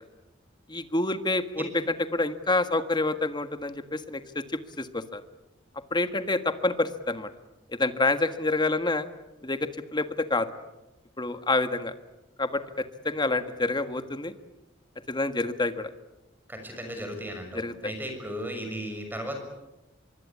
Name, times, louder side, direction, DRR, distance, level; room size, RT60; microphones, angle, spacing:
voice 1, 0.7-1.7 2.1-4.4 4.8-5.2 5.9-7.3 7.7-9.1 9.4-10.5 11.2-11.9 12.4-14.3 15.1-15.9 17.5-17.7, left 2 dB, 25° left, 9 dB, 1.6 m, -27 dB
voice 2, 16.5-19.4, equal, 10° right, 5 dB, 6.5 m, -35 dB
25.0 x 23.5 x 8.7 m, 0.99 s
head